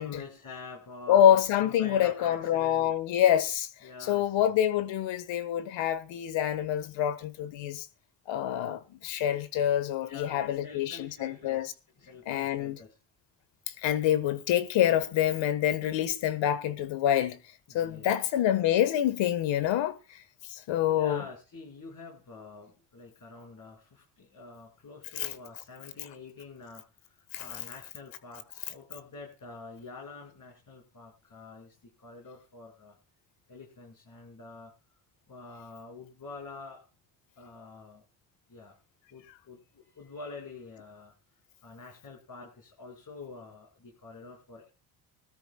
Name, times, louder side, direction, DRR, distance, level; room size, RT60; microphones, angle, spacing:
voice 1, 0.0-2.9 3.8-4.6 10.0-12.9 17.7-18.3 20.9-33.0 33.5-34.7 35.3-36.9 37.4-38.0 38.5-38.8 39.1-41.1 41.6-44.7, left 3 dB, 45° left, 5.8 m, -47 dB
voice 2, 1.1-3.7 4.0-7.9 8.3-11.7 12.2-12.8 13.7-17.4 17.7-20.2 20.5-21.2 25.1-25.3 27.3-27.5, left 10 dB, 75° left, 1.6 m, -26 dB
20.5 x 13.5 x 2.4 m
supercardioid pair, 80°, 45 cm